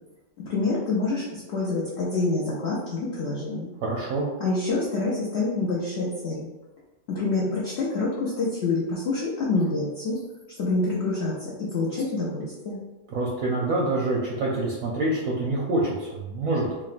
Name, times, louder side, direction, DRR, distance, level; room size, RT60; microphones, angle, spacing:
voice 1, 0.4-3.7 4.4-6.5 7.1-10.2 10.6-12.8, left 3 dB, 80° left, -6 dB, 0.5 m, -27 dB
voice 2, 3.8-4.3 13.1-16.7, right 2 dB, 70° right, -4 dB, 0.8 m, -26 dB
3.6 x 2.0 x 2.4 m, 1.1 s
omnidirectional pair, 1.8 m